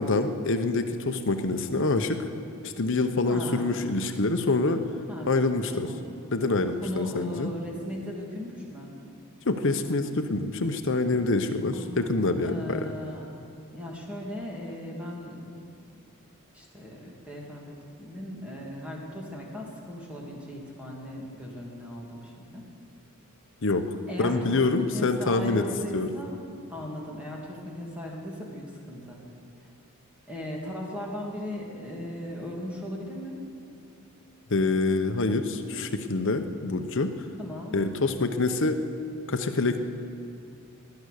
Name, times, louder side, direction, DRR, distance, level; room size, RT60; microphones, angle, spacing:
voice 1, 0.0-2.2 2.6-4.8 5.3-5.9 6.3-7.5 9.5-12.8 23.6-25.6 25.9-26.1 34.5-37.1 37.7-38.8 39.3-39.8, left 3 dB, 60° left, 8 dB, 0.9 m, -26 dB
voice 2, 3.2-3.7 5.1-5.3 5.7-6.0 6.8-8.9 11.7-12.1 12.4-13.3 13.7-15.6 16.5-22.7 24.1-26.4 26.7-29.2 30.3-33.4 37.4-37.8, left 1 dB, 5° right, -3 dB, 2.4 m, -37 dB
19.5 x 10.5 x 6.6 m, 2.6 s
head